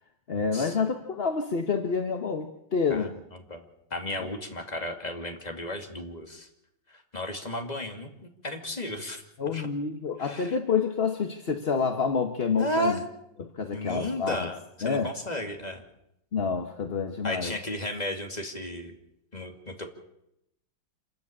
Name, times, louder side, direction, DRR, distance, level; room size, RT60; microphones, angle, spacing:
voice 1, 0.3-3.2 4.1-4.3 9.4-13.0 13.4-14.5 14.8-15.1 16.3-17.5, left 5 dB, 35° left, 5 dB, 1.2 m, -28 dB
voice 2, 2.9-3.6 3.9-6.5 6.9-9.2 9.5-9.7 10.2-10.6 12.6-13.0 13.7-15.8 17.2-18.9 19.3-19.9, left 1 dB, 20° left, 4 dB, 2.5 m, -34 dB
27.0 x 14.0 x 8.7 m, 0.83 s
omnidirectional pair, 2.2 m